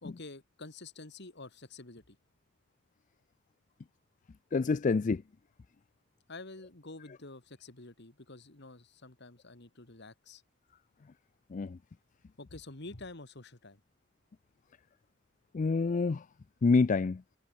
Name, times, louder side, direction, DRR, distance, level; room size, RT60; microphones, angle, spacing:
voice 1, 0.0-2.2 6.3-10.4 12.4-13.8, left 2 dB, 55° left, 2.2 m, -48 dB
voice 2, 4.5-5.2 11.5-11.8 15.5-16.2 16.6-17.2, left 4 dB, 40° left, 0.4 m, -27 dB
head